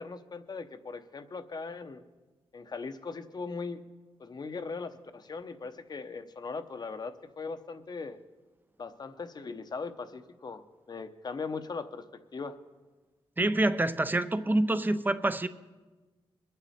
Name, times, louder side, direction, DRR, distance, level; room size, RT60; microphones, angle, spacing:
voice 1, 0.0-2.0 2.5-3.8 4.2-8.2 8.8-12.6, left 4 dB, 40° left, 9 dB, 0.9 m, -39 dB
voice 2, 13.4-15.5, right 1 dB, 20° right, 12 dB, 0.6 m, -26 dB
22.5 x 9.1 x 4.3 m, 1.2 s
cardioid pair, 95°, 11 cm